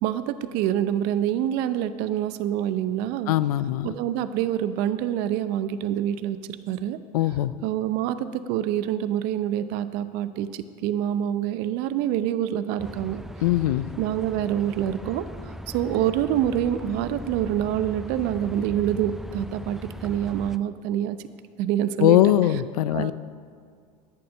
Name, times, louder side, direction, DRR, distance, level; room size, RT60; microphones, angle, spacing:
voice 1, 0.0-3.3 3.8-6.4 6.7-7.0 7.6-13.2 14.0-15.2 15.7-21.2 21.6-22.2 22.9-23.1, right 11 dB, 55° right, 12 dB, 0.7 m, -26 dB
voice 2, 3.3-3.9 7.1-7.5 13.4-13.9 22.0-23.1, left 14 dB, 75° left, 16 dB, 0.5 m, -21 dB
sound 1, 12.8-20.6, equal, ahead, 0.4 m, -39 dB
13.0 x 6.9 x 6.2 m, 2.2 s
hypercardioid pair, 85°, 19 cm